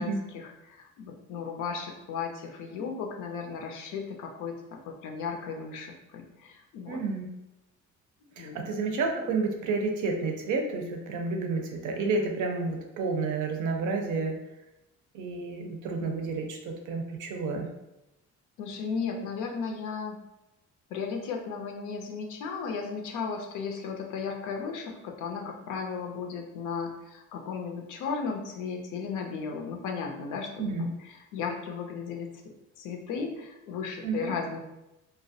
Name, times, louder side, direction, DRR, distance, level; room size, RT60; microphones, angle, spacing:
voice 1, 0.0-7.0 8.4-8.6 18.6-20.2 20.9-32.3 32.8-34.6, left 5 dB, 90° left, 2 dB, 0.5 m, -35 dB
voice 2, 6.9-7.3 8.4-14.4 15.1-17.7 30.6-30.9 34.0-34.3, right 3 dB, 80° right, 3 dB, 0.5 m, -30 dB
2.3 x 2.0 x 2.6 m, 0.93 s
cardioid pair, 90°, 30 cm